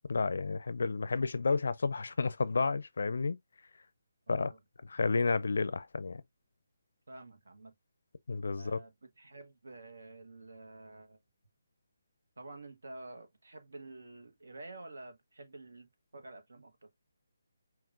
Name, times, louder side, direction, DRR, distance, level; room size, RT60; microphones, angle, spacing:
voice 1, 0.1-3.4 4.3-4.5 4.9-6.2 8.3-8.8, left 4 dB, 70° left, 0.4 m, -31 dB
voice 2, 4.3-4.6 7.1-7.7 8.6-11.2 12.4-16.9, right 2 dB, 75° right, 1.1 m, -50 dB
5.8 x 2.4 x 2.5 m
figure-of-eight pair, 155°, 0 cm